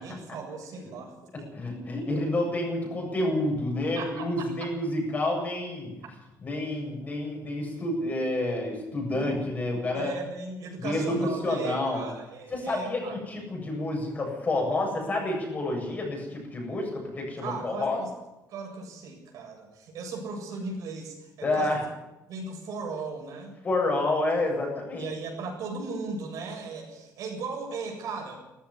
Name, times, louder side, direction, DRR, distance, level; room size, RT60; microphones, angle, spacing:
voice 1, 0.0-1.5 3.9-4.5 9.1-9.4 9.9-13.3 17.4-18.1 18.5-21.9 22.3-23.6 25.0-28.4, right 4 dB, 60° right, 1 dB, 7.8 m, -37 dB
voice 2, 1.6-5.9 6.4-10.1 10.8-12.0 12.5-18.0 21.4-21.8 23.6-25.1, left 2 dB, 25° left, 0 dB, 7.7 m, -29 dB
18.0 x 15.5 x 9.9 m, 0.98 s
cardioid pair, 165°, 7 cm